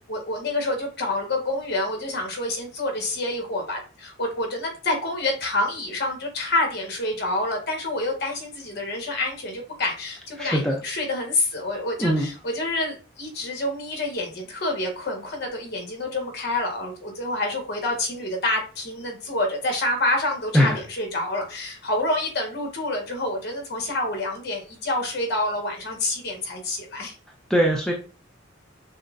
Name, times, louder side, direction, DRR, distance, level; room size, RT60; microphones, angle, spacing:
voice 1, 0.0-27.1, left 2 dB, 55° left, 2 dB, 1.3 m, -27 dB
voice 2, 10.4-10.8 12.0-12.3 20.5-20.8 27.5-27.9, equal, 5° left, -1 dB, 0.4 m, -20 dB
6.2 x 2.1 x 2.5 m, 0.35 s
head